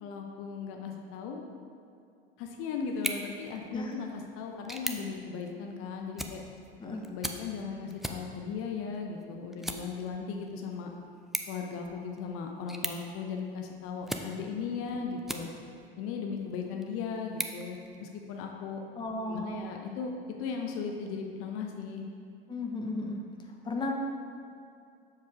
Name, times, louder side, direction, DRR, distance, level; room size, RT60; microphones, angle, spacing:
voice 1, 0.0-1.4 2.4-6.4 6.8-10.9 11.5-15.5 16.0-18.8 19.3-20.1 20.4-22.0, left 5 dB, 45° left, 2 dB, 0.8 m, -37 dB
sound 1, 2.9-15.9 16.4-18.4, right 1 dB, ahead, 0.3 m, -42 dB
voice 2, 18.9-19.6 22.5-23.2 23.6-23.9, left 2 dB, 15° left, 1 dB, 0.8 m, -34 dB
6.8 x 4.9 x 4.7 m, 2.5 s
figure-of-eight pair, 75°, 30 cm